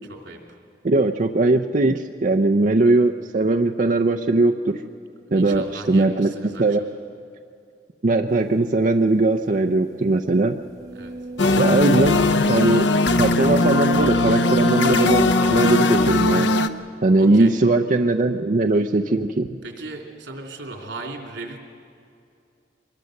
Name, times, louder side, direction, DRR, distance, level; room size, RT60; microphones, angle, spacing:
voice 1, 0.0-0.4 5.3-6.8 10.9-11.2 16.7-16.8 17.2-17.5 19.6-21.6, right 2 dB, 80° right, 1 dB, 3.1 m, -37 dB
voice 2, 0.8-4.8 5.3-6.3 6.6-6.8 8.0-10.6 11.6-12.2 12.5-12.9 13.2-16.5 17.0-19.6, right 2 dB, 45° right, 4 dB, 0.6 m, -19 dB
sound 1, 8.6-8.7 9.0-9.1 9.7-13.9 14.6-14.7, right 3 dB, 20° right, 2.2 m, -39 dB
sound 2, 11.4-16.7, left 2 dB, 85° left, 0.7 m, -19 dB
23.5 x 21.0 x 6.5 m, 2.5 s
head